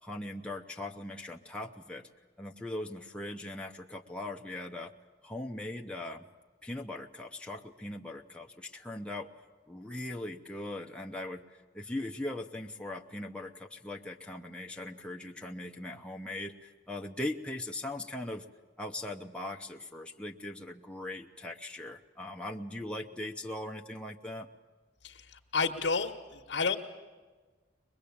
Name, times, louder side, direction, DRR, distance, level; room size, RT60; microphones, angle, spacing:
voice 1, 0.0-2.1 2.4-4.9 5.2-6.2 6.6-9.3 9.7-18.5 18.8-24.5, left 1 dB, 5° left, 1 dB, 0.8 m, -40 dB
voice 2, 25.0-26.8, left 4 dB, 85° left, 3 dB, 1.3 m, -31 dB
23.0 x 21.5 x 8.6 m, 1.4 s
head